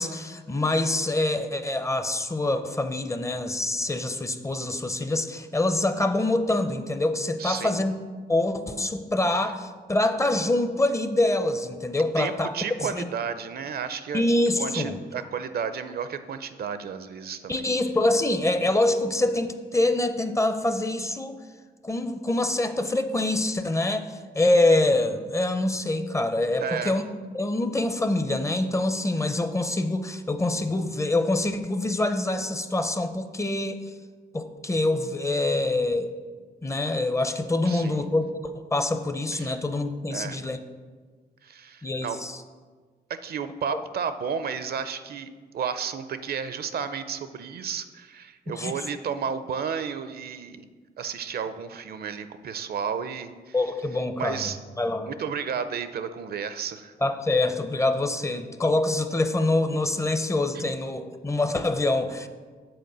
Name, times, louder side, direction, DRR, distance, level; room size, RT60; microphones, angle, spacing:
voice 1, 0.0-7.9 8.3-12.5 12.8-13.1 14.1-15.0 17.5-21.4 21.8-27.0 27.3-33.8 34.3-36.1 36.6-38.3 38.7-40.6 41.8-42.4 43.7-43.8 48.5-48.7 53.5-54.5 54.8-55.1 57.0-62.3, left 2 dB, 15° left, 9 dB, 0.5 m, -25 dB
voice 2, 7.4-7.8 9.3-9.5 12.2-14.3 14.6-17.7 26.6-27.0 37.6-38.1 39.3-39.6 40.1-40.4 41.4-42.2 43.1-50.7 51.0-53.6 54.2-54.6 55.1-56.9, right 7 dB, 65° right, 11 dB, 0.5 m, -32 dB
7.8 x 4.4 x 6.6 m, 1.5 s
cardioid pair, 115°, 17 cm